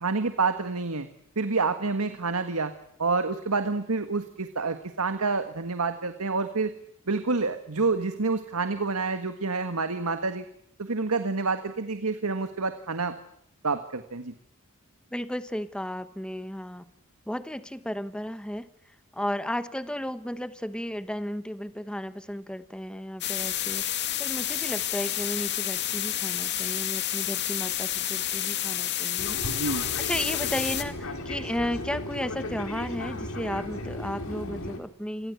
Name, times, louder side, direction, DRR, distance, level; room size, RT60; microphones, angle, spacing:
voice 1, 0.0-1.1 1.3-2.7 3.0-6.7 7.1-10.4 10.8-13.1 13.6-14.3 29.4-29.9, right 4 dB, 85° right, 8 dB, 1.7 m, -28 dB
voice 2, 15.1-16.9 17.3-29.4 29.7-35.3, equal, 5° left, 12 dB, 1.1 m, -34 dB
sound 1, 23.2-30.8, left 12 dB, 50° left, 2.3 m, -30 dB
Fixed-wing aircraft airplane, 29.2-34.8, left 1 dB, 70° left, 4.4 m, -35 dB
29.0 x 23.5 x 8.3 m, 0.70 s
head